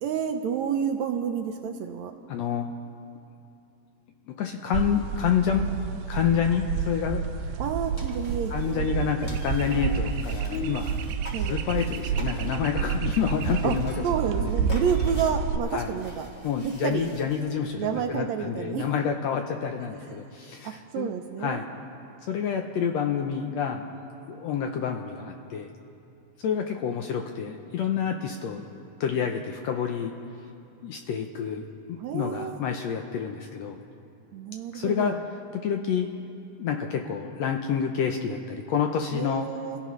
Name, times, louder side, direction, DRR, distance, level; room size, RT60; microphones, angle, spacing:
voice 1, 0.0-2.1 7.6-9.0 11.3-11.5 13.6-13.7 14.0-16.3 16.8-17.1 17.8-19.0 20.1-20.2 20.6-21.6 32.0-32.6 34.3-35.2 39.1-39.8, right 8 dB, 75° right, 4 dB, 1.8 m, -30 dB
voice 2, 2.3-2.7 4.4-5.7 6.1-7.2 8.5-11.0 11.4-13.9 14.4-14.5 15.7-15.9 16.4-21.1 21.4-21.6 22.3-23.8 24.3-25.7 26.4-28.6 29.0-30.1 30.8-33.8 34.7-35.1 35.5-36.1 36.6-39.5, left 7 dB, 75° left, 4 dB, 1.6 m, -28 dB
sound 1, 4.7-15.6, right 6 dB, 90° right, 2.3 m, -29 dB
sound 2, 7.9-18.1, left 3 dB, 25° left, 2.3 m, -43 dB
28.5 x 16.0 x 3.1 m, 2.7 s
omnidirectional pair, 3.7 m